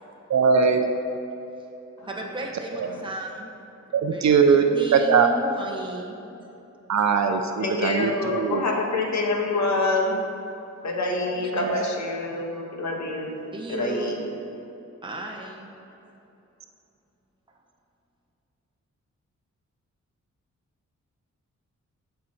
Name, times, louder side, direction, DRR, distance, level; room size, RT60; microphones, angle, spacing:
voice 1, 0.3-0.9 2.8-2.9 4.0-4.6 4.9-5.3 6.9-7.4 7.8-8.1 8.3-8.6 11.5-11.9, right 6 dB, 65° right, 6 dB, 0.6 m, -20 dB
voice 2, 2.0-3.5 4.1-6.2 11.4-11.5 13.5-14.2 15.0-15.7, right 2 dB, 15° right, -1 dB, 1.2 m, -34 dB
voice 3, 7.6-10.2 10.8-13.4 13.7-14.2, left 2 dB, 70° left, 1 dB, 1.5 m, -26 dB
15.0 x 5.7 x 4.3 m, 2.9 s
wide cardioid pair, 125°, 30 cm